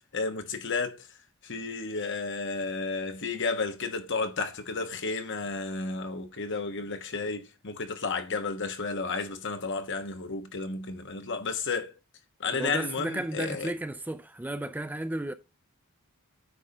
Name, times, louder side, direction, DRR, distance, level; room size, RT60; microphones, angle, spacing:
voice 1, 0.1-1.1 1.4-11.9 12.4-13.7, left 4 dB, 55° left, 1.2 m, -32 dB
voice 2, 12.5-15.3, right 1 dB, 10° right, 0.4 m, -33 dB
9.1 x 3.7 x 5.3 m
head